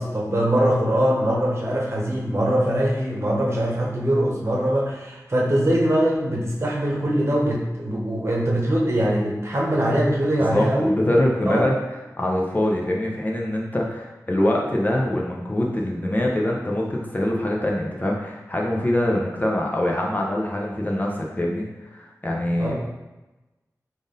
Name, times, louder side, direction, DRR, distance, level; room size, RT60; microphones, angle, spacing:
voice 1, 0.0-10.9 11.5-11.7 22.6-22.7, right 1 dB, 45° right, -3 dB, 0.9 m, -22 dB
voice 2, 10.4-11.7 12.2-21.7 21.9-22.7, left 1 dB, 25° left, -2 dB, 0.6 m, -24 dB
3.6 x 2.6 x 3.8 m, 1.1 s
wide cardioid pair, 70°, 6 cm